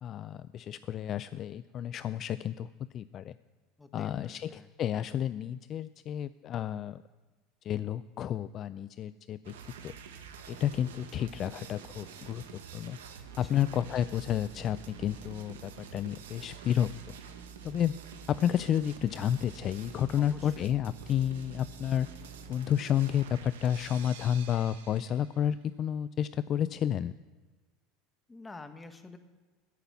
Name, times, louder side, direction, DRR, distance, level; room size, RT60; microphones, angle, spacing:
voice 1, 0.0-3.4 3.9-7.0 7.6-9.5 9.8-9.9 10.5-13.0 13.4-17.2 17.6-18.0 18.3-22.1 22.5-27.1, left 10 dB, 45° left, 16 dB, 0.3 m, -31 dB
voice 2, 3.8-4.7 13.2-13.7 20.2-20.7 28.3-29.2, left 3 dB, 15° left, 8 dB, 1.3 m, -49 dB
sound 1, 9.4-25.4, right 7 dB, 85° right, 1.2 m, -47 dB
14.0 x 5.8 x 8.3 m, 1.3 s
hypercardioid pair, 90°, 0 cm